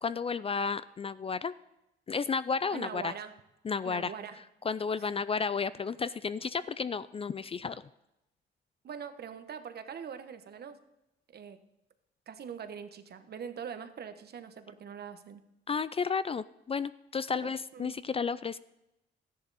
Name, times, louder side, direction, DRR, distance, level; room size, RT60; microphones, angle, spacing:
voice 1, 0.0-1.5 2.1-3.1 3.6-4.1 4.6-7.8 15.7-18.6, left 5 dB, 30° left, 16 dB, 0.4 m, -32 dB
voice 2, 2.7-3.3 3.8-4.4 5.0-5.2 8.8-10.8 11.3-11.6 12.3-15.4 17.3-18.0, right 7 dB, 55° right, 9 dB, 1.1 m, -43 dB
13.5 x 10.5 x 4.1 m, 0.90 s
cardioid pair, 90°, 20 cm